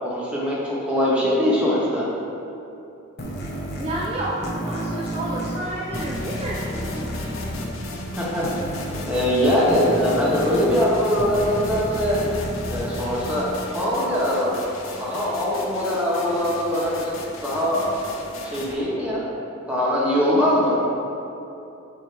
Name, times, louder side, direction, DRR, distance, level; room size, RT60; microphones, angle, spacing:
voice 1, 0.0-2.1 8.2-8.5 9.0-12.2 12.7-14.5 15.0-17.1 17.4-17.9 18.4-19.3 19.7-20.8, equal, 5° right, -7 dB, 1.3 m, -22 dB
sound 1, 3.2-14.4, equal, 55° left, 0.9 m, -31 dB
voice 2, 3.8-7.1, right 1 dB, 30° right, -5 dB, 0.5 m, -30 dB
sound 2, 5.9-18.7, left 2 dB, 85° left, 0.8 m, -38 dB
7.9 x 2.9 x 4.7 m, 2.8 s
head